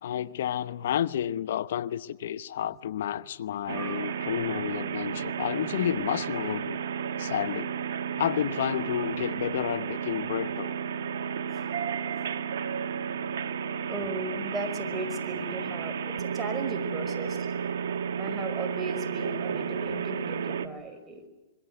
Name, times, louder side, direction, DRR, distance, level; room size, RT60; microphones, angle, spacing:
voice 1, 0.0-6.8 7.2-7.7 8.2-10.7, left 10 dB, 70° left, 0.8 m, -30 dB
sound 1, 3.7-20.7, right 7 dB, 70° right, 1.6 m, -32 dB
voice 2, 3.8-4.2 11.5-11.7 13.9-17.5 18.2-21.3, right 2 dB, 15° right, 5.5 m, -37 dB
26.0 x 23.0 x 7.9 m
hypercardioid pair, 125°, 0 cm